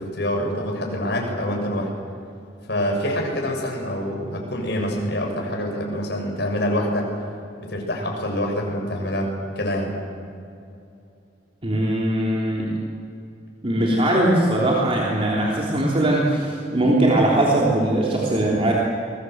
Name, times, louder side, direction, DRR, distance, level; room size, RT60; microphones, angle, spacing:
voice 1, 0.0-1.9 2.7-7.1 7.6-9.9, equal, 65° left, 1 dB, 6.5 m, -26 dB
voice 2, 11.6-12.7 13.6-18.7, right 1 dB, 30° right, -4 dB, 3.4 m, -20 dB
28.5 x 22.5 x 8.0 m, 2.6 s
head